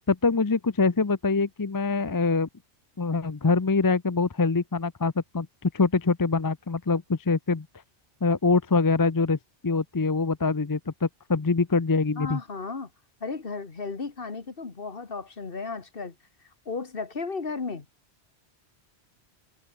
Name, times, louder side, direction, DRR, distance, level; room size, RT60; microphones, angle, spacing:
voice 1, 0.1-2.5 3.0-7.7 8.2-9.4 9.6-12.4, left 4 dB, 25° left, 0.5 m, -24 dB
voice 2, 12.2-12.9 13.2-16.1 16.7-17.9, left 4 dB, 55° left, 1.9 m, -34 dB
omnidirectional pair, 1.2 m